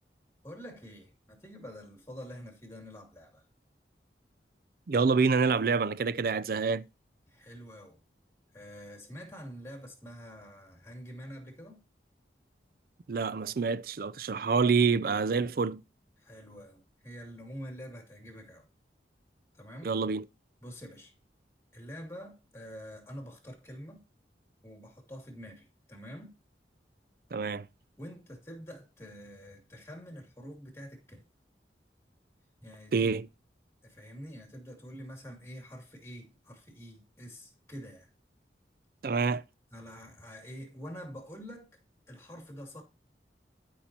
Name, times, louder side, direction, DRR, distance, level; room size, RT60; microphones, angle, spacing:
voice 1, 0.4-3.4 7.3-8.0 8.5-11.8 16.2-18.6 19.5-19.9 20.6-21.1 21.7-24.0 24.6-26.3 28.0-31.3 32.6-33.1 33.8-38.1 39.7-41.7 42.1-42.8, equal, 15° left, 2.5 m, -46 dB
voice 2, 4.9-6.9 13.1-15.8 19.8-20.2 27.3-27.7 32.9-33.3 39.0-39.4, right 5 dB, 55° right, 0.4 m, -27 dB
12.5 x 5.7 x 2.9 m
head